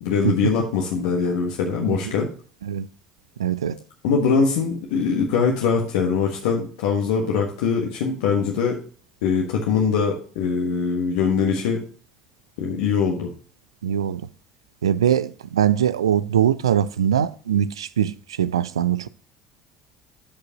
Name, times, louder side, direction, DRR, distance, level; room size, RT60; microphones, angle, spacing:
voice 1, 0.0-2.3 4.0-8.8 9.2-11.8 12.6-13.3, left 6 dB, 70° left, 1.4 m, -22 dB
voice 2, 3.4-3.8 13.8-14.2 14.8-19.1, right 9 dB, 80° right, 0.4 m, -22 dB
13.0 x 5.1 x 2.9 m
figure-of-eight pair, 60°, 3 cm